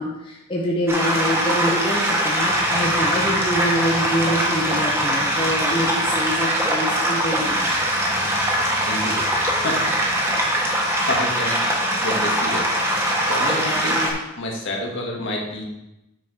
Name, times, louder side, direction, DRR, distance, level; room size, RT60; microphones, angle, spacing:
voice 1, 0.0-7.6, equal, 25° left, -4 dB, 1.1 m, -25 dB
sound 1, 0.9-14.1, equal, 10° right, 1.4 m, -22 dB
voice 2, 8.9-9.3 9.6-12.7 13.3-15.7, left 1 dB, 60° left, -1 dB, 1.8 m, -29 dB
9.1 x 4.8 x 5.1 m, 0.92 s
head